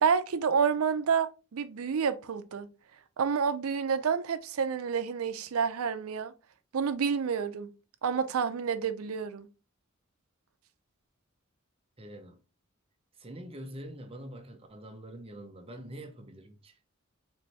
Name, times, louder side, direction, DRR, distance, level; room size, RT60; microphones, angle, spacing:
voice 1, 0.0-2.7 3.2-6.3 6.7-7.7 8.0-9.5, right 6 dB, 75° right, 0.5 m, -29 dB
voice 2, 12.0-12.4 13.2-16.8, right 1 dB, 25° right, 0.6 m, -45 dB
4.3 x 2.6 x 3.2 m
head